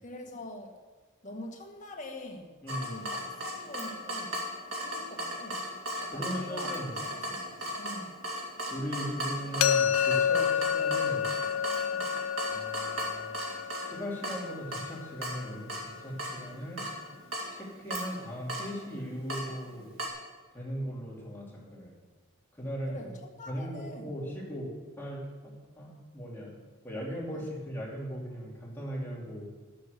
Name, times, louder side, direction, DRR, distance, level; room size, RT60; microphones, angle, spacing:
voice 1, 0.0-0.8 1.2-2.6 2.8-4.5 4.8-5.7 6.0-8.2 11.9-12.2 22.9-24.3 27.3-27.5, left 1 dB, 35° left, 2 dB, 1.6 m, -45 dB
voice 2, 2.6-2.9 6.1-6.9 8.7-11.2 12.5-13.3 13.8-16.8 17.5-19.9 20.5-21.9 22.6-22.9 23.5-26.5 26.8-29.5, equal, 10° left, -5 dB, 3.2 m, -38 dB
Water tap faucet / Drip, 2.7-20.1, equal, 65° right, 2.3 m, -37 dB
sound 1, 9.6-15.4, left 8 dB, 75° left, 0.5 m, -30 dB
12.0 x 7.8 x 6.6 m, 1.3 s
head